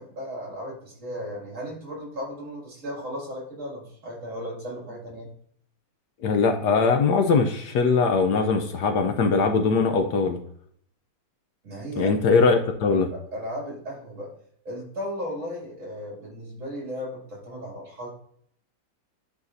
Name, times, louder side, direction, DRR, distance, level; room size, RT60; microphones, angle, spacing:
voice 1, 0.0-5.3 11.6-12.1 12.9-14.3 14.6-18.1, equal, 40° right, -3 dB, 2.7 m, -35 dB
voice 2, 6.2-10.4 12.0-13.1, left 4 dB, 70° left, 5 dB, 1.1 m, -21 dB
11.0 x 4.1 x 2.6 m, 0.64 s
omnidirectional pair, 2.1 m